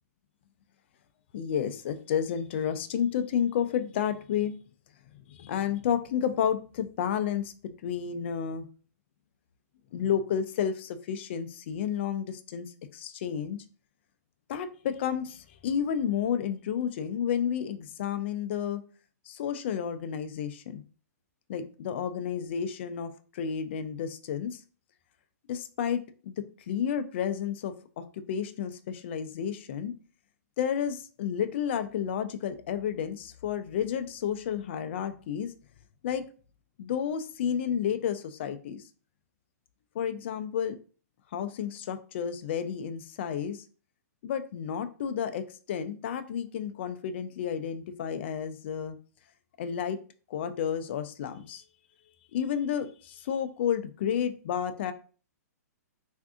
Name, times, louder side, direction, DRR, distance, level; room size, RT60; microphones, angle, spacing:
voice 1, 1.3-4.5 5.3-7.5 7.8-8.6 9.9-13.6 14.5-18.8 19.3-20.8 21.5-24.6 25.5-29.9 30.6-35.5 36.0-36.2 36.8-38.8 39.9-40.8 41.3-43.6 44.2-49.0 49.6-50.0 50.3-51.6 52.3-54.9, left 8 dB, 40° left, 10 dB, 0.4 m, -31 dB
3.5 x 2.5 x 2.4 m, 0.39 s
hypercardioid pair, 160°, 9 cm